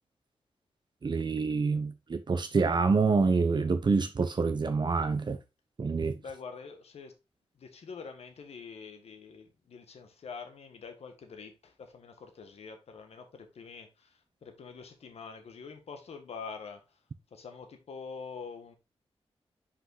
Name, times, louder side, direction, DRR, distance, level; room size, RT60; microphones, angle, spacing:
voice 1, 1.0-5.4 5.8-6.2, right 4 dB, 45° right, 0.9 m, -27 dB
voice 2, 6.2-7.1 7.6-11.5 11.9-13.9 14.4-16.8 17.3-18.8, left 5 dB, 80° left, 1.5 m, -45 dB
5.9 x 5.5 x 3.9 m
wide cardioid pair, 85°, 10 cm